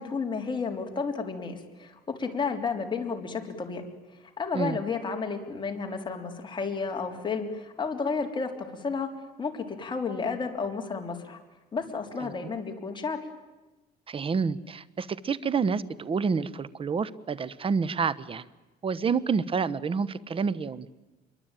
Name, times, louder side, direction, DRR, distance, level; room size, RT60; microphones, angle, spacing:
voice 1, 0.0-3.9 4.4-9.1 9.4-11.4 11.7-13.2, left 5 dB, 25° left, 3 dB, 3.7 m, -32 dB
voice 2, 14.1-18.5 18.8-20.9, right 5 dB, 35° right, 18 dB, 1.1 m, -28 dB
26.5 x 23.0 x 9.1 m, 1.1 s
cardioid pair, 110°, 17 cm